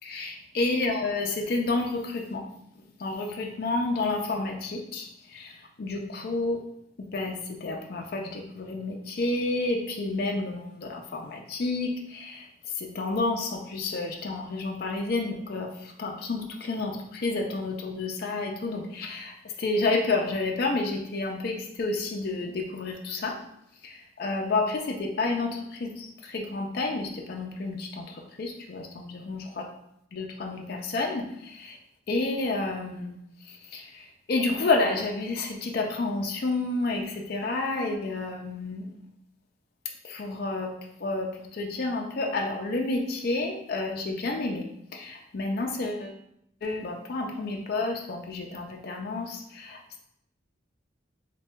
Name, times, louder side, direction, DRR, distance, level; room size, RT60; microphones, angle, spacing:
voice 1, 0.0-2.5 3.0-6.6 7.0-23.4 23.8-29.7 30.1-31.8 32.1-33.2 33.4-38.9 40.0-40.7 41.0-44.7 44.9-46.2 46.6-50.0, left 3 dB, 50° left, 1 dB, 0.4 m, -30 dB
3.3 x 2.2 x 4.2 m, 0.77 s
head